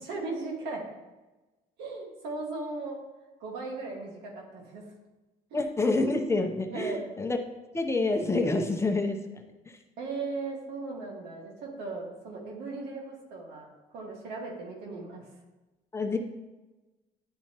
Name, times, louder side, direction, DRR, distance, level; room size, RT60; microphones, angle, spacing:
voice 1, 0.1-0.8 1.8-3.0 3.4-4.8 5.5-5.7 6.7-7.0 10.0-13.7 13.9-15.2, right 3 dB, 90° right, 0 dB, 1.8 m, -37 dB
voice 2, 5.5-7.4 7.7-9.8 15.9-16.2, left 2 dB, 15° left, 4 dB, 0.7 m, -28 dB
10.5 x 4.3 x 2.9 m, 1.1 s
cardioid pair, 110°, 17 cm